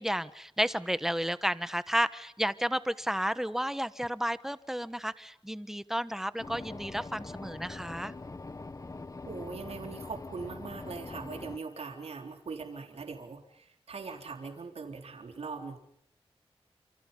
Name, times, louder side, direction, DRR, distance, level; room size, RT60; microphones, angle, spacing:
voice 1, 0.0-8.1, equal, 5° right, 13 dB, 1.2 m, -32 dB
sound 1, 6.4-11.6, left 3 dB, 35° left, 1.1 m, -43 dB
voice 2, 9.3-15.8, right 4 dB, 90° right, 4 dB, 3.7 m, -41 dB
29.5 x 28.0 x 5.5 m, 0.70 s
wide cardioid pair, 85°, 10 cm